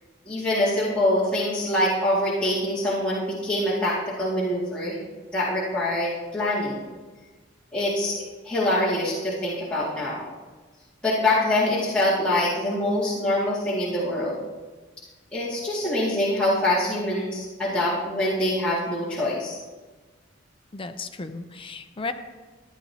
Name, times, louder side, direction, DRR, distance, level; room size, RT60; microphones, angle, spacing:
voice 1, 0.3-5.0 5.3-6.8 7.7-10.2 11.0-14.4 15.3-19.6, left 1 dB, 5° left, -11 dB, 2.2 m, -24 dB
voice 2, 20.7-22.1, left 3 dB, 25° left, 8 dB, 0.6 m, -34 dB
14.0 x 10.0 x 2.9 m, 1.3 s
head